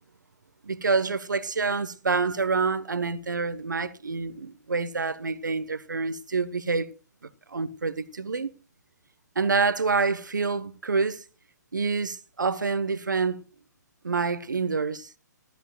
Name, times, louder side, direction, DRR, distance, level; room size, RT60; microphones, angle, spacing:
voice 1, 0.6-6.9 7.5-8.5 9.3-11.2 11.7-13.4 14.0-15.1, right 4 dB, 85° right, 1.1 m, -27 dB
15.0 x 14.0 x 2.3 m
hypercardioid pair, 130°, 10 cm